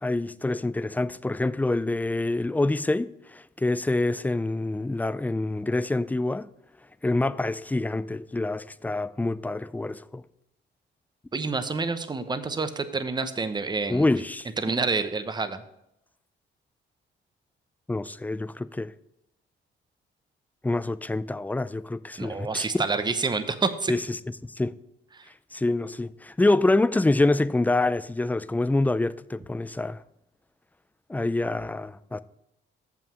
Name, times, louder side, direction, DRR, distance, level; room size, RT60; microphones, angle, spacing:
voice 1, 0.0-6.5 7.0-10.2 13.9-14.5 17.9-18.9 20.6-22.7 23.9-24.0 24.4-24.7 25.5-30.0 31.1-32.2, left 2 dB, 10° left, 0.3 m, -26 dB
voice 2, 11.3-14.1 14.6-15.6 22.2-23.9 25.1-25.3, right 4 dB, 20° right, 0.8 m, -28 dB
7.1 x 5.8 x 6.1 m
cardioid pair, 90°, 20 cm